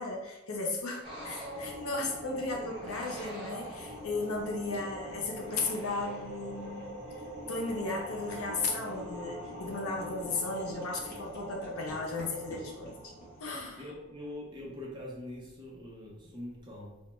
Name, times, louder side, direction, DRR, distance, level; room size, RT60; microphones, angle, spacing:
voice 1, 0.0-6.8 7.5-13.1 13.4-13.8, left 3 dB, 90° left, 1 dB, 0.6 m, -35 dB
sound 1, 1.0-14.0, equal, 5° right, 1.2 m, -43 dB
sound 2, 1.5-13.6, equal, 45° left, 0.8 m, -54 dB
voice 2, 13.8-17.0, left 1 dB, 20° right, -3 dB, 0.5 m, -43 dB
2.2 x 2.1 x 3.0 m, 1.0 s
head